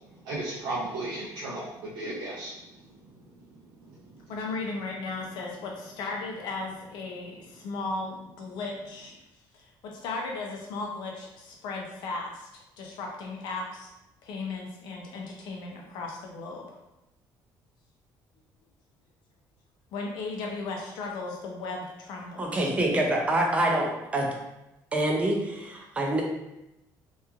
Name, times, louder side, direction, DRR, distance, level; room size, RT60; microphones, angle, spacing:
voice 1, 0.2-2.5, right 2 dB, 70° right, -6 dB, 0.5 m, -34 dB
voice 2, 4.3-9.1 9.5-12.5 12.8-13.9 14.2-16.8 19.9-22.7, left 3 dB, 75° left, 0 dB, 0.5 m, -36 dB
voice 3, 22.4-24.3 24.9-26.2, right 1 dB, 15° right, 0 dB, 0.4 m, -26 dB
3.0 x 2.3 x 2.3 m, 0.93 s
cardioid pair, 170°, 8 cm